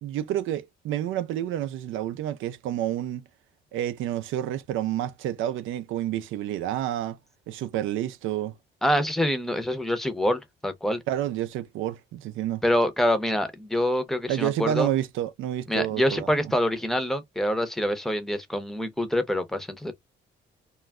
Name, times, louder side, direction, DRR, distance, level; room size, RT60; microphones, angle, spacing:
voice 1, 0.0-3.2 3.7-7.2 7.5-8.5 11.1-12.6 14.3-16.3, right 12 dB, 85° right, 0.4 m, -29 dB
voice 2, 8.8-11.0 12.6-14.9 15.7-19.9, equal, ahead, 0.6 m, -26 dB
2.2 x 2.1 x 3.4 m
cardioid pair, 90°, 20 cm